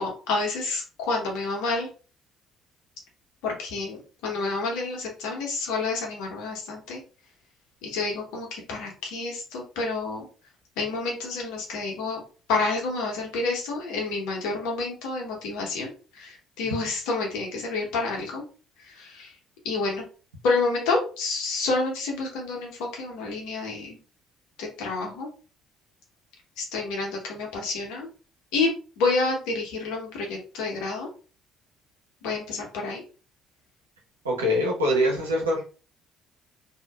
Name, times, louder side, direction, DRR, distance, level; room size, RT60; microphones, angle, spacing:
voice 1, 0.0-1.9 3.4-7.0 7.8-10.3 10.8-12.2 12.5-18.4 18.8-19.3 19.6-20.0 20.4-24.0 24.6-25.3 26.6-28.1 28.5-28.7 29.0-31.1 32.2-33.0, left 3 dB, 70° left, -1 dB, 1.0 m, -29 dB
voice 2, 34.2-35.6, equal, 90° right, -2 dB, 0.8 m, -23 dB
2.8 x 2.4 x 2.4 m, 0.36 s
hypercardioid pair, 50°, 0 cm